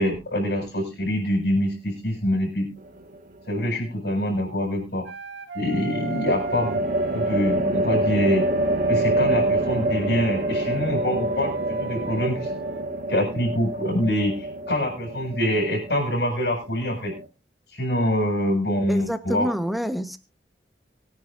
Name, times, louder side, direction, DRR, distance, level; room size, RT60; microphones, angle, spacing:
voice 1, 0.0-2.7 3.5-5.1 5.5-6.8 7.1-8.4 8.9-12.5 13.1-17.1 17.7-19.5, equal, 65° left, 0 dB, 7.2 m, -25 dB
sound 1, 2.8-3.4 5.9-17.3, right 1 dB, 50° right, 1.8 m, -27 dB
Wind instrument woodwind instrument, 5.1-7.7 8.3-12.8, right 4 dB, 70° right, 1.8 m, -38 dB
voice 2, 18.9-20.2, equal, ahead, 8 dB, 1.2 m, -27 dB
24.5 x 9.9 x 2.6 m, 0.28 s
head